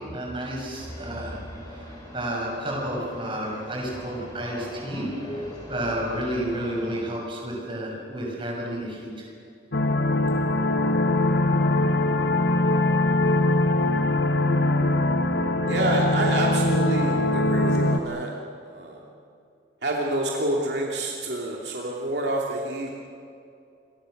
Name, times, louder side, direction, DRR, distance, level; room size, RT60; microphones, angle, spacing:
voice 1, 0.1-1.4 2.1-5.1 5.7-9.2, right 1 dB, 30° right, -2 dB, 6.7 m, -31 dB
sound 1, 0.7-7.0, equal, 25° left, 7.8 m, -41 dB
sound 2, 9.7-18.0, left 2 dB, 70° left, 1.3 m, -22 dB
voice 2, 15.7-18.3 18.6-19.0 19.8-22.9, right 2 dB, 65° right, -2 dB, 2.8 m, -28 dB
28.0 x 23.0 x 6.7 m, 2.5 s
head